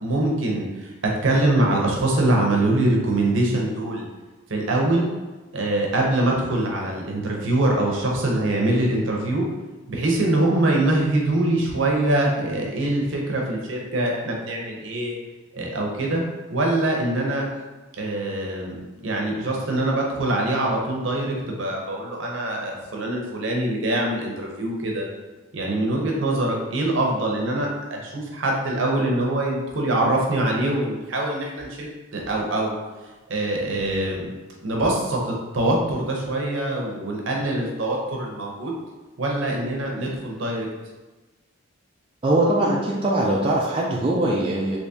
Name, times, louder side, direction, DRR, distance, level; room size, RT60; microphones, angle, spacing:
voice 1, 0.0-4.1 4.5-5.1 5.5-9.4 9.9-15.1 15.5-16.2 16.5-17.5 18.0-25.0 25.5-32.8 33.3-34.3 34.6-38.7 39.2-40.7, right 1 dB, 65° right, -1 dB, 0.7 m, -23 dB
voice 2, 42.2-44.8, right 1 dB, 25° right, -4 dB, 0.3 m, -21 dB
3.4 x 2.9 x 2.8 m, 1.2 s
head